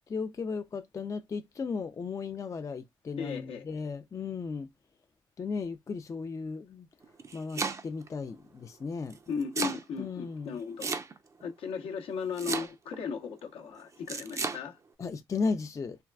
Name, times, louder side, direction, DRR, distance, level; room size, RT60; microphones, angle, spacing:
voice 1, 0.1-4.7 5.4-6.9 7.3-9.2 10.0-10.5 15.0-16.0, left 4 dB, 35° left, 0.4 m, -35 dB
voice 2, 3.2-3.7 9.3-10.9 11.4-14.8, left 6 dB, 75° left, 0.7 m, -36 dB
Domestic sounds home sounds, 7.0-8.1 9.1-9.8 10.8-11.4 12.4-13.0 14.1-14.6, right 4 dB, 30° right, 0.5 m, -33 dB
3.5 x 2.2 x 2.2 m
supercardioid pair, 65°, 10 cm